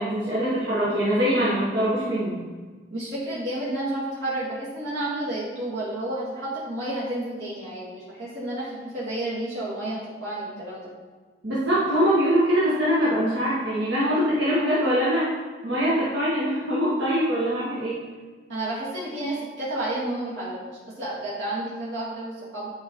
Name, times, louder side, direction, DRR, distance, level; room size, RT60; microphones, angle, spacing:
voice 1, 0.0-2.4 11.4-15.3 15.6-18.0, equal, 70° right, -9 dB, 1.8 m, -23 dB
voice 2, 2.9-10.9 18.5-22.7, right 1 dB, 85° right, -9 dB, 2.3 m, -31 dB
9.6 x 4.8 x 3.9 m, 1.4 s
head